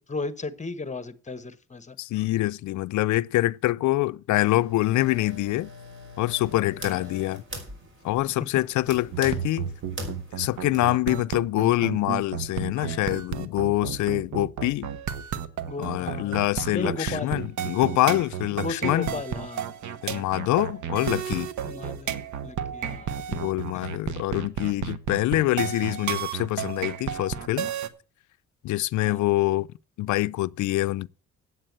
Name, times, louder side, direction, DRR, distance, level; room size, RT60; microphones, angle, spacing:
voice 1, 0.0-2.0 6.8-7.0 7.6-7.7 15.7-16.4 16.7-17.4 18.6-19.6 21.6-22.1 22.4-23.1 23.7-23.8 29.0-29.2, left 3 dB, 25° left, 1.1 m, -35 dB
voice 2, 2.0-5.7 6.2-7.4 8.0-9.7 10.4-14.9 15.8-19.1 20.0-21.5 23.3-27.7 28.6-29.7 30.0-31.1, left 17 dB, 75° left, 0.5 m, -25 dB
sound 1, 4.5-10.9, equal, 40° right, 5.1 m, -41 dB
sound 2, 9.1-27.9, right 8 dB, 70° right, 1.1 m, -32 dB
8.8 x 8.0 x 7.9 m
cardioid pair, 90°, 30 cm